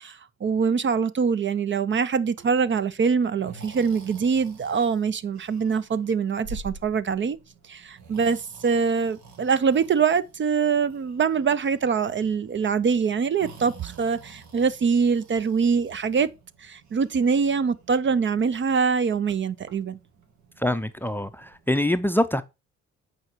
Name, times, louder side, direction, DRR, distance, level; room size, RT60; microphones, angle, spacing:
voice 1, 0.0-7.4 7.7-16.3 16.6-20.0, right 6 dB, 40° right, 0.6 m, -24 dB
Breathing, 2.2-21.8, right 3 dB, 80° right, 1.6 m, -49 dB
voice 2, 20.6-22.4, left 1 dB, 5° left, 0.5 m, -24 dB
8.0 x 4.9 x 4.4 m
cardioid pair, 85°, 29 cm